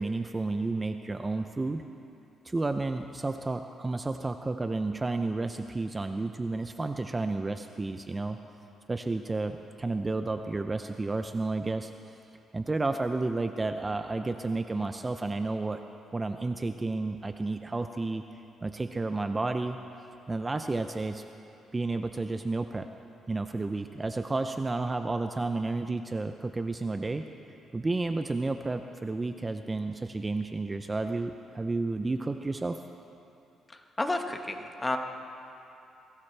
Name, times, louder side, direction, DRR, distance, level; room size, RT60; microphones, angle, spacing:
voice 1, 0.0-1.8 2.4-8.4 8.9-11.9 12.5-15.8 16.1-18.2 18.6-19.8 20.3-21.2 21.7-22.9 23.3-27.3 27.7-32.8, right 3 dB, 20° right, 7 dB, 0.5 m, -31 dB
voice 2, 33.7-35.0, left 2 dB, 20° left, 5 dB, 1.3 m, -31 dB
22.0 x 18.0 x 3.4 m, 2.8 s
cardioid pair, 90°, 0 cm